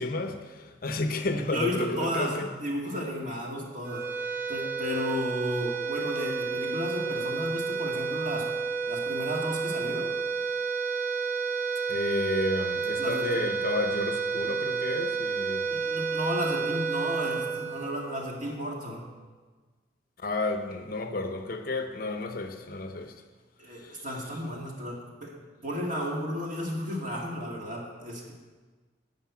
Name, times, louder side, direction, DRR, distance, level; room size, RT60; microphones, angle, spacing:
voice 1, 0.0-2.5 11.9-15.8 20.2-23.2 23.7-24.0, left 2 dB, 50° left, 6 dB, 0.7 m, -32 dB
voice 2, 1.5-4.1 4.5-8.5 8.9-10.1 13.0-13.3 15.7-19.1 23.6-25.3 25.6-28.3, equal, 45° right, -2 dB, 2.1 m, -33 dB
sound 1, 3.8-18.4, right 5 dB, 15° right, 1.7 m, -31 dB
11.5 x 5.4 x 8.3 m, 1.4 s
head